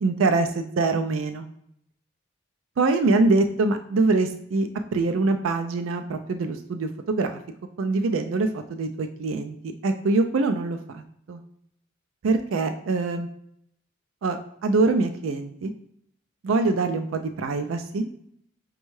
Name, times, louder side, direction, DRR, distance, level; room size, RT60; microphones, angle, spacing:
voice 1, 0.0-1.5 2.8-7.4 7.8-9.6 9.8-11.4 12.2-13.3 14.2-15.7 16.4-18.1, right 3 dB, 85° right, 7 dB, 0.4 m, -24 dB
5.2 x 2.3 x 3.1 m, 0.72 s
head